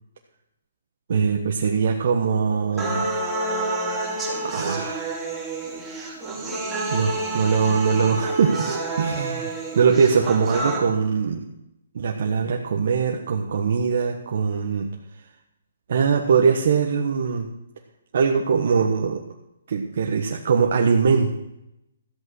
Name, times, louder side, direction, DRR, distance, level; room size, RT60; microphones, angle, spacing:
voice 1, 1.1-3.1 4.3-5.1 6.9-11.4 11.9-14.9 15.9-17.5 18.1-19.2 19.7-21.3, right 6 dB, 55° right, 2 dB, 1.3 m, -22 dB
sound 1, 2.8-10.8, right 2 dB, 5° right, 2.7 m, -28 dB
14.0 x 8.3 x 6.2 m, 0.84 s
hypercardioid pair, 165°, 0 cm